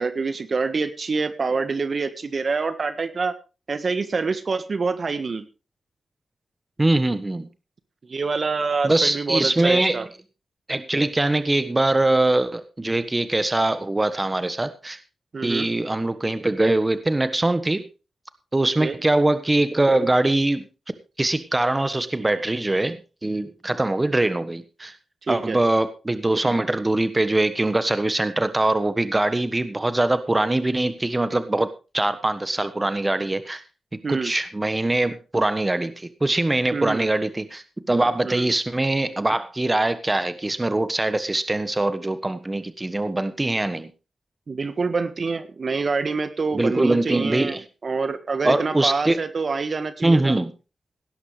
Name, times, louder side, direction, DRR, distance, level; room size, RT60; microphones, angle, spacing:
voice 1, 0.0-3.4 3.7-5.4 8.0-10.1 15.3-15.7 18.8-19.0 25.2-25.6 34.0-34.3 36.7-37.1 38.2-38.5 44.5-50.4, right 4 dB, 55° right, 11 dB, 1.5 m, -26 dB
voice 2, 6.8-7.5 8.8-10.0 10.7-15.0 15.4-17.8 18.5-20.6 21.2-24.9 25.3-31.7 31.9-33.6 34.1-43.9 46.5-47.6 48.4-49.2 50.0-50.5, right 2 dB, 25° right, 12 dB, 1.3 m, -22 dB
18.0 x 11.0 x 3.3 m, 0.32 s
supercardioid pair, 45°, 0 cm